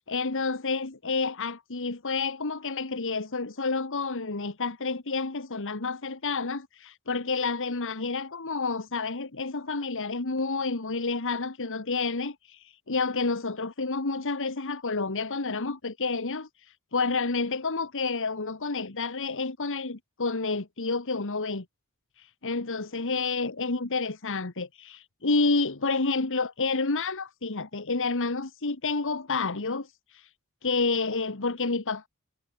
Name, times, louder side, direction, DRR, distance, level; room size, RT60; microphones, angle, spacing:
voice 1, 0.0-16.5 16.9-21.7 22.2-29.9 30.1-30.2 30.6-32.1, left 3 dB, 60° left, 1.7 m, -29 dB
head